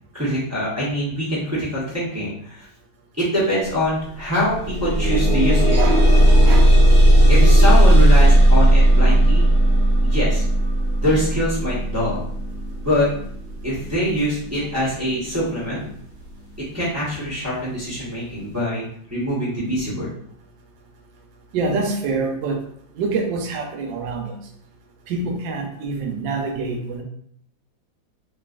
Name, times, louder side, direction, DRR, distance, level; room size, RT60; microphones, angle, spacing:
voice 1, 0.1-2.7 3.2-5.8 7.3-9.5 10.0-10.4 11.0-12.3 12.8-13.1 13.6-15.8 16.7-20.1, equal, 15° right, -9 dB, 0.5 m, -24 dB
sound 1, 3.7-3.8 4.2-15.2 16.0-16.1 16.6-16.7, right 1 dB, 55° right, 0.9 m, -15 dB
voice 2, 5.7-6.7 21.5-22.6 22.9-24.4 25.1-27.0, right 3 dB, 80° right, 3 dB, 1.3 m, -26 dB
3.0 x 2.5 x 2.4 m, 0.64 s
omnidirectional pair, 2.0 m